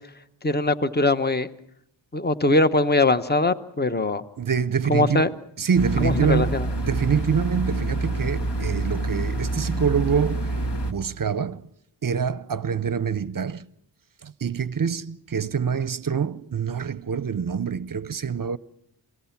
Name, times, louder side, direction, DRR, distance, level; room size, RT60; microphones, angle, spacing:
voice 1, 0.4-1.5 2.1-4.2 4.9-5.3 6.0-6.7, left 2 dB, 20° left, 1.1 m, -21 dB
voice 2, 4.4-10.6 10.8-11.7 12.0-13.7 14.2-18.6, right 7 dB, 45° right, 0.7 m, -26 dB
sound 1, 5.8-10.9, right 2 dB, 55° left, 2.1 m, -27 dB
28.0 x 19.0 x 5.9 m
cardioid pair, 45°, 49 cm